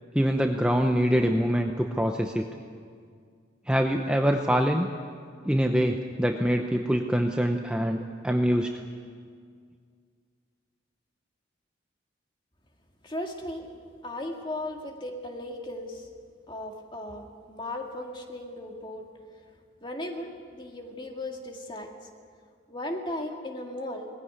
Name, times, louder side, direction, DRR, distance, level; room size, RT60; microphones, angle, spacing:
voice 1, 0.1-2.4 3.7-4.9 5.5-8.7, equal, 5° right, 3 dB, 0.7 m, -24 dB
voice 2, 13.0-13.7 14.0-16.1 16.5-19.0 19.8-21.9 22.7-24.1, left 1 dB, 25° left, 2 dB, 2.0 m, -36 dB
20.0 x 16.0 x 9.6 m, 2.1 s
head